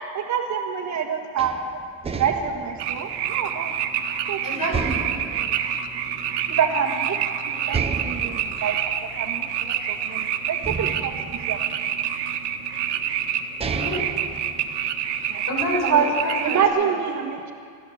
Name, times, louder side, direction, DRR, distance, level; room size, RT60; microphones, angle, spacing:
voice 1, 0.0-1.8 2.1-5.5 6.5-7.2 7.4-11.2 11.5-11.6 15.3-15.4 15.8-16.1 16.4-17.5, right 7 dB, 40° right, 3 dB, 1.5 m, -27 dB
sound 1, 1.4-4.2 4.7-6.7 7.0-7.1 7.7-10.1 10.6-12.2 13.0-13.1 13.4-15.2, right 4 dB, 15° right, 0.6 m, -33 dB
sound 2, 2.8-16.6, right 9 dB, 65° right, 1.5 m, -27 dB
voice 2, 4.4-5.0 13.6-14.0 15.5-16.9, left 1 dB, 45° left, -2 dB, 6.8 m, -29 dB
27.0 x 13.5 x 7.1 m, 2.2 s
cardioid pair, 180°, 43 cm